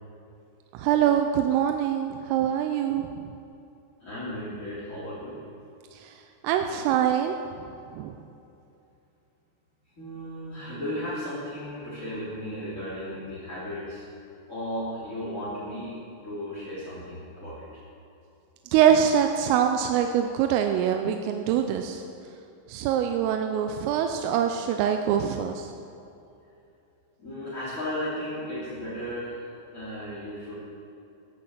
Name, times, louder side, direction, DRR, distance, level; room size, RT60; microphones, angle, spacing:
voice 1, 0.7-3.3 5.9-7.6 7.9-8.1 18.7-22.0 22.7-25.7, right 9 dB, 90° right, 5 dB, 3.3 m, -24 dB
voice 2, 4.0-5.4 10.0-14.0 14.5-16.0 16.2-17.7 27.2-30.6, equal, 20° left, -10 dB, 2.8 m, -35 dB
17.0 x 10.5 x 7.5 m, 2.7 s
omnidirectional pair, 5.9 m